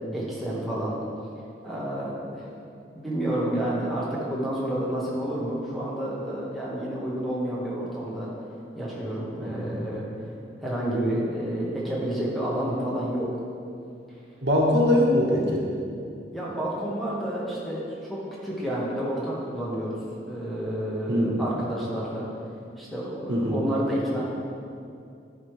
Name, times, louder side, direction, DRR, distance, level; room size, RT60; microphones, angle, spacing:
voice 1, 0.1-1.0 1.6-2.5 2.9-8.3 8.7-10.1 10.6-13.3 16.3-20.0 20.3-22.3 22.8-24.2, right 1 dB, ahead, -7 dB, 1.3 m, -29 dB
voice 2, 14.4-15.7 21.1-21.4 23.3-23.6, left 1 dB, 85° right, -3 dB, 1.4 m, -22 dB
11.5 x 4.9 x 3.2 m, 2.5 s
head